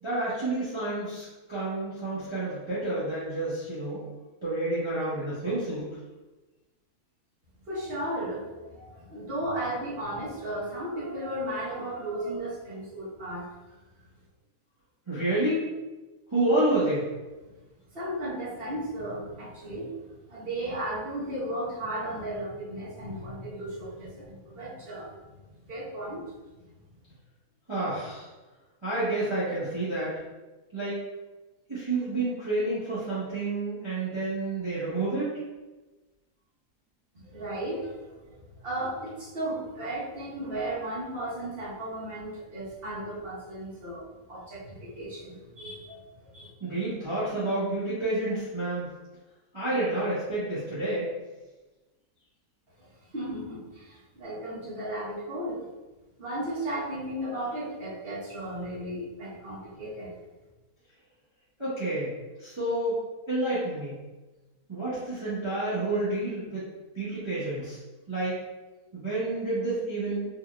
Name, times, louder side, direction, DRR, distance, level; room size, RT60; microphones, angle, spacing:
voice 1, 0.0-4.0 4.4-5.9 15.1-15.6 16.3-17.0 27.7-28.3 28.8-30.1 30.7-30.9 31.7-35.3 46.6-48.8 49.5-51.1 61.6-62.1 62.4-63.0 63.3-63.9 64.7-66.6 66.9-67.8 68.1-68.4 68.9-70.3, right 2 dB, 20° right, -13 dB, 1.2 m, -29 dB
voice 2, 7.7-13.5 17.4-17.5 17.9-25.1 25.7-26.3 37.2-46.5 52.8-55.7 56.2-60.1, right 1 dB, 40° right, -8 dB, 1.3 m, -35 dB
4.3 x 3.3 x 2.3 m, 1.2 s
omnidirectional pair, 1.6 m